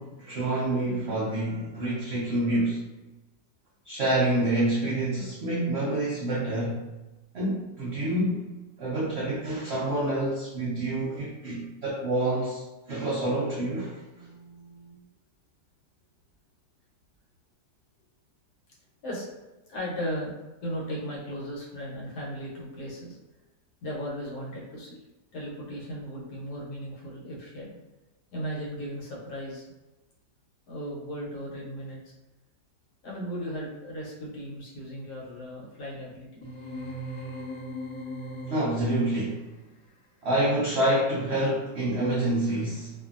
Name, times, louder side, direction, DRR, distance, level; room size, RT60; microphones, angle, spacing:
voice 1, 0.0-2.8 3.8-6.8 7.3-8.5 8.8-12.6 12.9-14.0 38.5-39.5 40.2-42.9, right 1 dB, 80° right, -5 dB, 0.5 m, -27 dB
voice 2, 14.1-15.0 19.0-19.3 19.7-20.3 20.6-23.2 23.8-25.0 25.3-27.8 28.3-29.6 30.7-32.0 33.0-36.4, equal, 70° left, -4 dB, 1.3 m, -36 dB
sound 1, 36.4-39.0, equal, 55° left, 0.9 m, -38 dB
2.8 x 2.5 x 2.4 m, 1.1 s
omnidirectional pair, 1.8 m